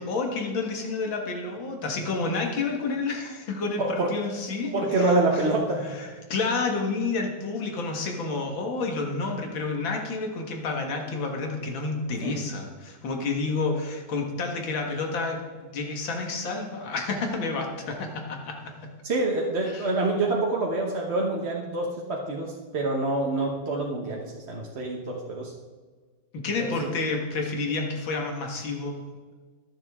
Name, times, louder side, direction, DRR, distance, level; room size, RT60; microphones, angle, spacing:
voice 1, 0.0-5.5 5.9-18.9 19.7-19.9 26.3-29.0, left 3 dB, 85° left, 2 dB, 2.4 m, -30 dB
voice 2, 3.8-4.1 4.7-5.9 12.2-12.4 19.0-25.5, right 2 dB, 40° right, -1 dB, 1.3 m, -26 dB
22.5 x 7.6 x 3.7 m, 1.5 s
omnidirectional pair, 2.1 m